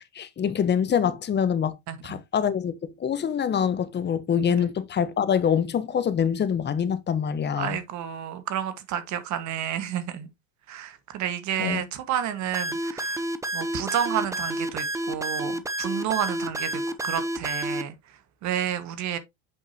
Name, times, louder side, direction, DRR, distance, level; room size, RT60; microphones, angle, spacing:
voice 1, 0.0-1.8 2.0-7.8 11.6-11.8, left 8 dB, 30° left, 1.1 m, -25 dB
voice 2, 1.9-2.2 7.6-10.3 10.7-13.2 13.5-19.2, right 10 dB, 50° right, 1.7 m, -30 dB
sound 1, 12.5-17.8, right 1 dB, 10° right, 0.8 m, -29 dB
8.5 x 5.4 x 2.9 m
supercardioid pair, 95°, 35 cm